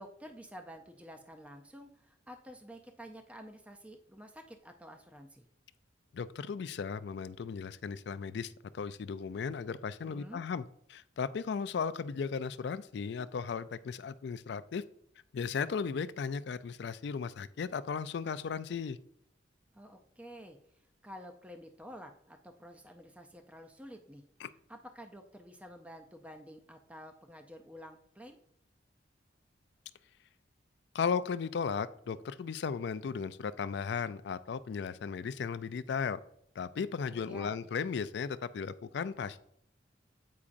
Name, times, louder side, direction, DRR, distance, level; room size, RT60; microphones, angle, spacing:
voice 1, 0.0-5.4 10.0-10.4 19.7-24.2 24.7-28.4 37.1-37.6, equal, 5° right, 5 dB, 0.4 m, -50 dB
voice 2, 6.1-14.8 15.3-19.0 24.4-24.5 30.9-36.2 36.6-39.4, left 6 dB, 60° left, 14 dB, 0.3 m, -36 dB
8.4 x 4.8 x 2.5 m, 0.71 s
head